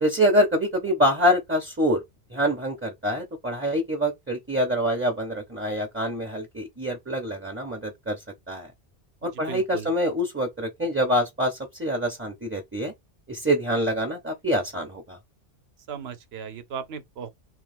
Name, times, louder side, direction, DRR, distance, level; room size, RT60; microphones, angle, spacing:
voice 1, 0.0-2.0 2.3-8.2 8.5-8.7 9.2-12.9 13.3-15.2, equal, 10° right, 0.8 m, -25 dB
voice 2, 9.5-9.9 15.9-17.3, right 7 dB, 60° right, 1.0 m, -36 dB
3.3 x 3.2 x 3.4 m
omnidirectional pair, 1.2 m